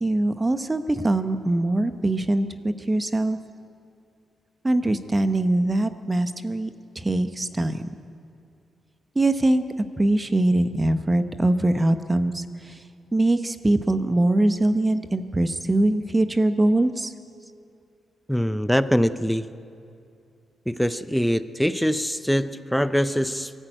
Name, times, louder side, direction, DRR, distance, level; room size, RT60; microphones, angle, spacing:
voice 1, 0.0-3.4 4.6-6.7 7.0-7.9 9.1-9.6 10.0-12.8 13.1-17.1, right 1 dB, 15° right, 10 dB, 0.9 m, -22 dB
voice 2, 18.3-19.5 20.7-23.5, equal, ahead, 13 dB, 0.6 m, -23 dB
23.5 x 14.0 x 9.0 m, 2.5 s
wide cardioid pair, 135°, 0 cm